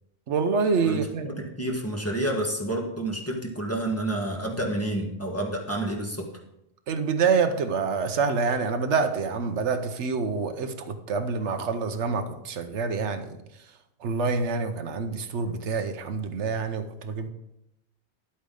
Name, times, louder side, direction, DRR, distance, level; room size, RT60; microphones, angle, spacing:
voice 1, 0.3-1.3 6.9-13.3 14.0-17.3, right 5 dB, 80° right, 8 dB, 1.1 m, -26 dB
voice 2, 0.8-6.2, right 1 dB, 15° left, 0 dB, 1.5 m, -29 dB
11.5 x 8.4 x 3.8 m, 0.84 s
omnidirectional pair, 1.2 m